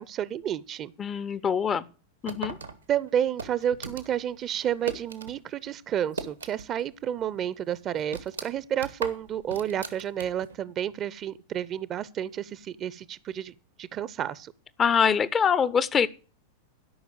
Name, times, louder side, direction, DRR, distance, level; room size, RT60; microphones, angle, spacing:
voice 1, 0.0-0.9 2.9-14.5, right 10 dB, 30° right, 0.6 m, -30 dB
voice 2, 1.0-1.9 2.2-2.6 14.8-16.1, left 7 dB, 25° left, 0.6 m, -24 dB
Mysounds LG-FR Galeno-metal box, 2.3-5.4 5.7-6.9 7.2-7.3 7.7-10.6, right 4 dB, 80° right, 1.4 m, -38 dB
12.5 x 5.7 x 8.0 m
figure-of-eight pair, 90°, 0 cm